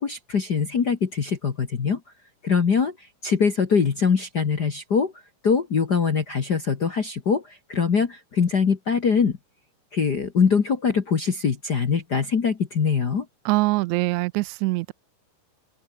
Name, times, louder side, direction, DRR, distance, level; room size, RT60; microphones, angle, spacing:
voice 1, 0.0-2.0 2.4-2.9 3.2-5.1 5.4-9.4 9.9-13.2, left 6 dB, 40° left, 1.6 m, -23 dB
voice 2, 13.4-14.9, right 22 dB, 85° right, 1.6 m, -23 dB
open air
omnidirectional pair, 3.9 m